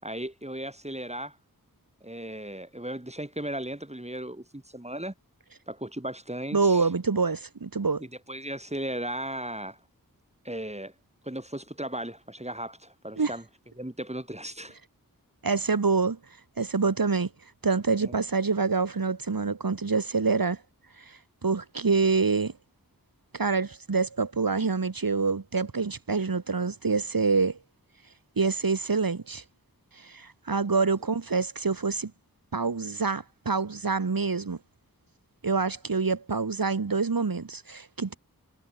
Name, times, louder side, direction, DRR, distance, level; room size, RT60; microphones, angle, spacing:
voice 1, 0.0-1.4 2.0-5.1 5.7-6.9 8.0-9.8 10.4-10.9 11.2-13.4 13.8-14.8 18.0-18.2, right 1 dB, 20° right, 4.2 m, -36 dB
voice 2, 6.5-8.0 13.2-13.3 15.4-16.2 16.6-17.3 17.6-20.6 21.0-22.5 23.3-27.6 28.4-29.4 29.9-32.1 32.5-34.6 35.4-38.2, right 4 dB, 75° right, 1.9 m, -26 dB
wide cardioid pair, 45°, 35 cm